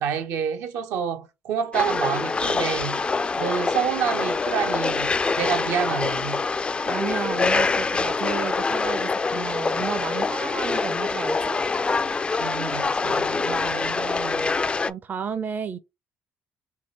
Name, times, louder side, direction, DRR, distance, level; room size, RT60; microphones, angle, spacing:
voice 1, 0.0-3.0 3.3-6.5 12.4-14.6, right 7 dB, 85° right, 0.9 m, -28 dB
sound 1, 1.7-14.9, left 4 dB, 20° left, 0.3 m, -25 dB
voice 2, 6.8-11.6 14.9-15.8, right 7 dB, 40° right, 0.5 m, -32 dB
3.7 x 2.5 x 4.1 m
cardioid pair, 105°, 5 cm